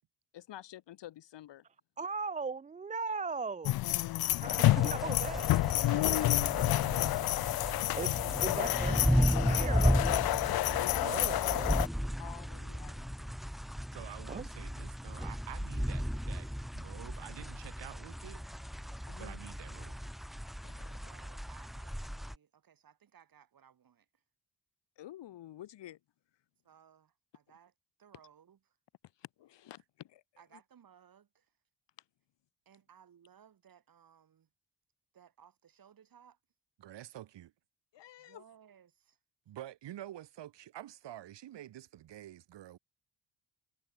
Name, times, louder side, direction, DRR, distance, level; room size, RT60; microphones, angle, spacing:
voice 1, 0.3-1.6 10.7-11.2 12.2-13.4 19.1-19.4 20.6-20.9 25.0-26.0 29.2-30.2 37.9-38.4, left 13 dB, 85° left, 4.4 m, -49 dB
voice 2, 2.0-3.8 4.4-5.6 5.9-6.3 8.0-8.1 8.4-9.9 11.0-11.8 14.3-14.5, right 4 dB, 20° right, 0.4 m, -38 dB
sound 1, 3.6-11.9, left 16 dB, 60° left, 0.5 m, -29 dB
sound 2, 4.5-22.3, equal, ahead, 0.8 m, -35 dB
voice 3, 4.9-5.2 13.9-18.4 19.2-20.0 36.8-37.5 39.5-42.8, right 12 dB, 80° right, 3.6 m, -48 dB
voice 4, 21.0-24.2 26.6-27.7 28.0-28.8 30.4-31.6 32.6-34.5 35.1-36.4 38.2-39.2, right 8 dB, 55° right, 6.5 m, -61 dB
cardioid pair, 115°, 42 cm